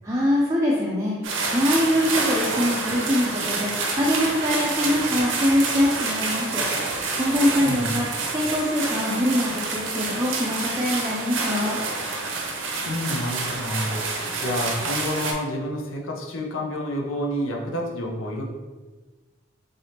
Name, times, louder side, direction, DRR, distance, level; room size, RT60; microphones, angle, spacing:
voice 1, 0.0-8.1 8.3-11.8, left 1 dB, 15° right, -5 dB, 0.4 m, -24 dB
sound 1, 1.2-15.3, right 3 dB, 70° right, 0.6 m, -28 dB
voice 2, 7.6-8.0 12.6-18.4, equal, 85° left, 0 dB, 0.7 m, -29 dB
3.8 x 3.3 x 2.8 m, 1.3 s
head